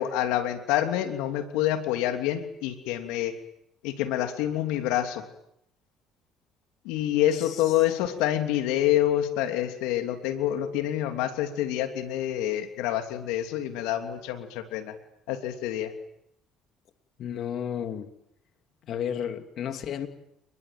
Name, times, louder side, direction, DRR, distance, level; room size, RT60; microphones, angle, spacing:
voice 1, 0.0-3.4 3.8-5.2 6.8-15.0 15.3-15.9, left 12 dB, 90° left, 3.1 m, -27 dB
voice 2, 7.3-7.7 17.2-18.1 18.9-20.1, left 9 dB, 60° left, 2.7 m, -33 dB
29.5 x 21.5 x 9.1 m
cardioid pair, 95°, 0 cm